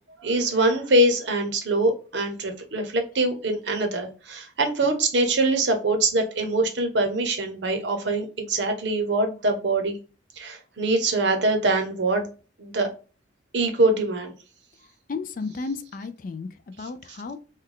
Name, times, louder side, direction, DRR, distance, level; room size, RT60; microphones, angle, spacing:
voice 1, 0.2-10.0 10.4-12.3 12.6-12.9 13.5-14.3, right 2 dB, 60° right, 5 dB, 0.7 m, -23 dB
voice 2, 15.1-17.4, left 4 dB, 45° left, 10 dB, 0.3 m, -33 dB
3.2 x 2.2 x 3.7 m, 0.35 s
head